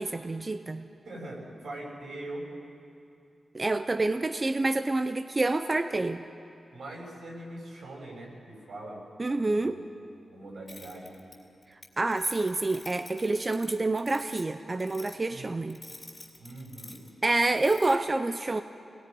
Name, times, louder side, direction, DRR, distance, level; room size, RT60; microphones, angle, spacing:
voice 1, 0.0-0.9 3.5-6.2 9.2-9.8 12.0-15.8 17.2-18.6, right 2 dB, 25° right, 9 dB, 0.5 m, -27 dB
voice 2, 1.0-2.5 6.7-9.0 9.3-9.8 10.3-11.1 15.3-15.5 16.4-17.0, right 1 dB, 85° right, -3 dB, 6.7 m, -42 dB
sound 1, 10.7-11.9 12.1-14.5 14.8-15.2 15.7-17.1 17.4-18.0, left 2 dB, 20° left, 3.7 m, -48 dB
26.5 x 20.0 x 5.4 m, 2.6 s
wide cardioid pair, 130°, 0 cm